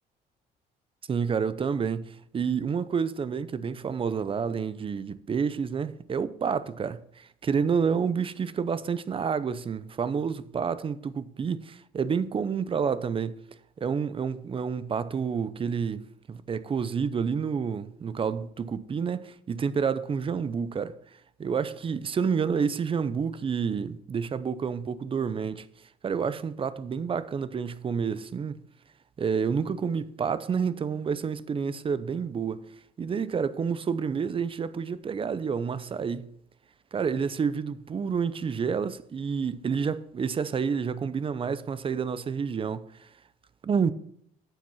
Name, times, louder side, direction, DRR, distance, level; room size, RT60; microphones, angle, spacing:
voice 1, 1.1-13.4 13.8-16.0 16.3-20.9 21.4-25.7 26.0-28.6 29.2-32.6 33.0-36.3 36.9-43.1 43.6-43.9, right 6 dB, 30° right, 0.7 m, -29 dB
9.1 x 7.4 x 5.7 m
cardioid pair, 110°, 17 cm